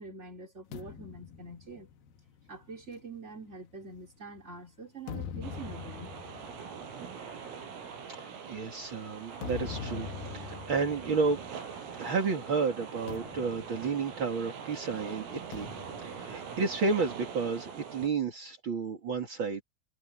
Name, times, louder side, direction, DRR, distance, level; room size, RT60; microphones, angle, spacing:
voice 1, 0.0-1.9 2.5-6.1, right 3 dB, 15° right, 3.3 m, -45 dB
sound 1, 0.7-4.3 4.8-12.3 12.5-12.7 13.1-14.7 15.5-17.3, left 7 dB, 75° left, 2.2 m, -44 dB
sound 2, 5.4-18.1, right 7 dB, 85° right, 6.3 m, -43 dB
voice 2, 8.1-11.4 11.9-19.6, right 4 dB, 50° right, 1.4 m, -32 dB
omnidirectional pair, 5.9 m